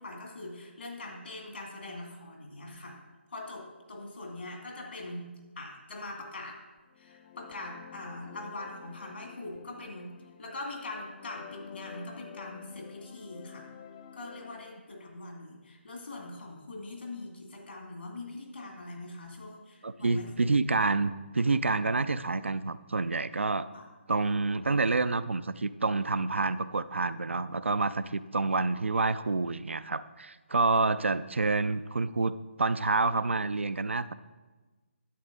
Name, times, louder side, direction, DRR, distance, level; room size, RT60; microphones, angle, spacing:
voice 1, 0.0-3.0 3.3-5.3 5.6-6.6 7.0-10.1 10.4-13.7 14.1-20.6 23.7-23.9, left 2 dB, 65° left, 1 dB, 2.2 m, -42 dB
sound 1, 6.9-14.8, left 7 dB, 25° left, 0.4 m, -49 dB
voice 2, 19.8-23.7 24.1-32.3 32.6-34.1, right 3 dB, 75° right, 14 dB, 0.4 m, -28 dB
11.0 x 7.0 x 3.7 m, 1.2 s
figure-of-eight pair, 145°, 7 cm